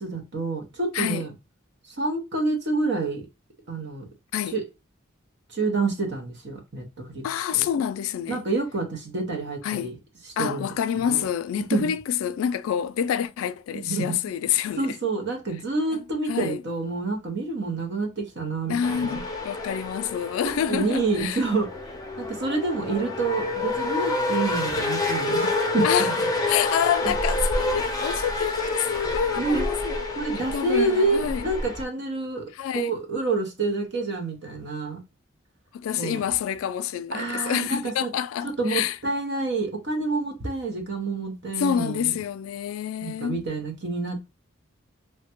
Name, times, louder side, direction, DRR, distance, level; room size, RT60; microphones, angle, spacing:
voice 1, 0.0-1.3 2.0-3.2 3.7-4.1 4.5-4.6 5.5-7.2 7.5-7.7 8.3-10.0 10.2-11.2 11.7-11.9 13.7-14.1 14.8-19.2 20.4-26.3 27.0-27.1 29.4-29.7 30.1-32.4 32.7-35.0 35.9-36.2 37.1-38.1 38.4-42.2 43.0-44.2, right 3 dB, 60° right, 0.9 m, -28 dB
voice 2, 7.2-8.4 9.6-9.9 10.4-14.9 16.3-16.6 18.7-21.4 25.8-26.1 26.5-30.0 30.5-31.4 32.6-32.9 35.7-39.0 41.6-43.4, left 9 dB, 85° left, 0.3 m, -27 dB
sound 1, 18.8-31.8, left 2 dB, 20° left, 0.5 m, -28 dB
3.2 x 2.2 x 2.9 m
head